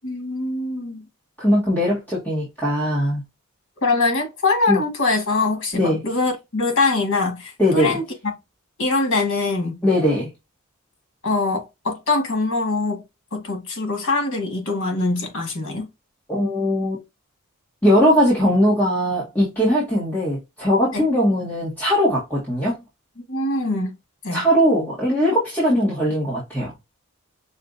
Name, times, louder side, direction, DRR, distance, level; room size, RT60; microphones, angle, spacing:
voice 1, 0.0-1.0 3.8-8.3 8.8-9.8 11.2-13.0 13.3-15.9 20.9-21.1 23.3-23.9 24.2-24.4, left 3 dB, 60° left, 1.7 m, -23 dB
voice 2, 1.4-3.2 4.7-4.8 5.7-6.0 7.6-8.0 9.8-10.3 16.3-17.0 17.8-22.8 24.3-26.7, equal, 10° left, 1.8 m, -20 dB
5.6 x 2.7 x 2.6 m
head